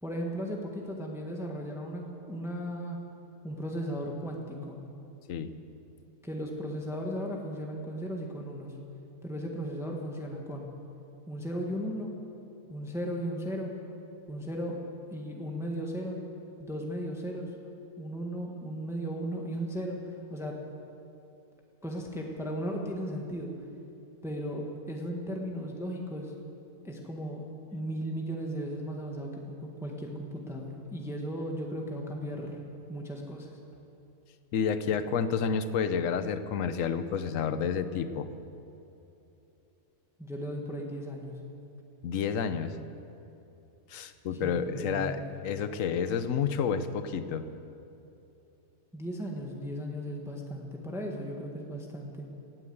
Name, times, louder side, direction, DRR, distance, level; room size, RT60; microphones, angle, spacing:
voice 1, 0.0-3.0 3.4-4.8 6.2-8.7 9.2-10.7 11.3-12.1 12.7-13.7 14.3-14.8 15.1-16.2 16.6-17.5 18.0-20.0 20.3-20.6 21.8-23.5 24.2-26.3 26.8-27.4 27.7-32.5 32.9-33.6 40.2-41.3 44.4-45.3 48.9-52.2, equal, ahead, 0 dB, 1.4 m, -36 dB
voice 2, 34.5-38.3 42.0-42.8 43.9-47.5, left 6 dB, 65° left, 11 dB, 1.1 m, -30 dB
17.5 x 9.3 x 7.9 m, 2.8 s
omnidirectional pair, 1.6 m